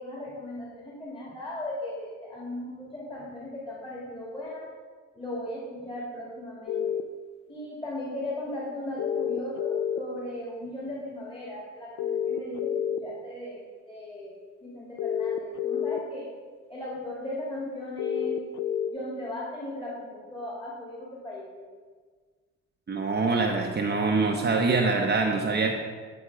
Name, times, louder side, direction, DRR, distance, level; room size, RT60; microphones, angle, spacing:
voice 1, 0.0-4.7 5.1-7.0 7.5-13.6 13.9-14.3 14.6-16.3 16.7-18.4 18.9-21.7, left 1 dB, 20° left, -6 dB, 2.5 m, -37 dB
sound 1, 6.7-7.0 9.0-10.0 12.0-13.0 15.0-16.0 18.0-18.9, left 9 dB, 80° left, 0.5 m, -28 dB
voice 2, 22.9-25.8, right 3 dB, 35° right, 1 dB, 0.9 m, -24 dB
9.7 x 5.3 x 4.8 m, 1.5 s
cardioid pair, 90°, 30 cm